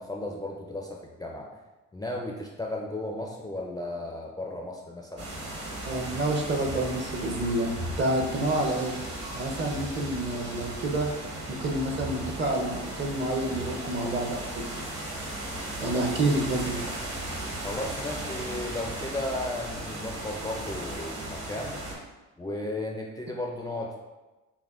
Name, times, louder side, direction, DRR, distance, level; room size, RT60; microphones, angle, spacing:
voice 1, 0.0-1.5 1.9-5.3 15.8-16.0 17.6-21.8 22.4-24.0, left 1 dB, 15° left, -1 dB, 0.4 m, -35 dB
sound 1, 5.2-21.9, right 1 dB, 50° right, 1.2 m, -36 dB
voice 2, 5.9-8.9 9.3-11.1 11.5-14.7 15.8-16.8, right 2 dB, 35° right, 3 dB, 0.6 m, -28 dB
5.7 x 2.1 x 2.4 m, 1.1 s
cardioid pair, 90°, 30 cm